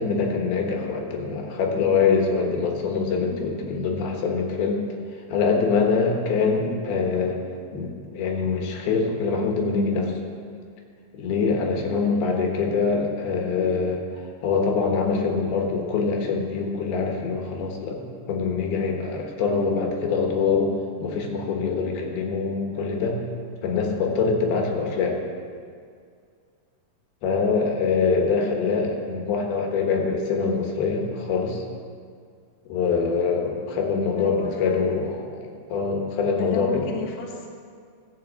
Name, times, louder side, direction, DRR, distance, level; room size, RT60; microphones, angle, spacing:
voice 1, 0.0-4.8 5.1-7.4 7.7-10.2 11.1-14.0 14.4-23.2 23.6-25.2 27.2-31.6 32.7-36.9, left 5 dB, 75° left, 1 dB, 3.1 m, -24 dB
voice 2, 12.0-12.4 34.2-35.0 36.3-37.5, left 5 dB, 60° left, -1 dB, 1.8 m, -35 dB
15.0 x 5.6 x 7.2 m, 2.2 s
omnidirectional pair, 4.6 m